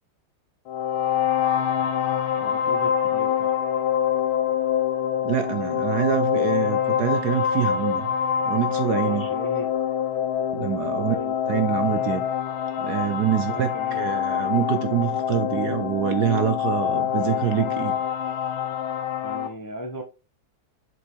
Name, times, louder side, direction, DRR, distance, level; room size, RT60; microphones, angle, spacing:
sound 1, 0.7-19.5, left 9 dB, 90° left, 1.8 m, -25 dB
voice 1, 2.4-3.5 9.0-9.7 11.0-11.3 13.4-14.0 19.2-20.0, equal, 15° left, 0.8 m, -36 dB
voice 2, 5.2-8.1 8.5-9.3 10.5-11.2 11.4-12.3 12.8-18.0, right 10 dB, 65° right, 1.1 m, -25 dB
7.6 x 5.3 x 3.5 m
omnidirectional pair, 2.2 m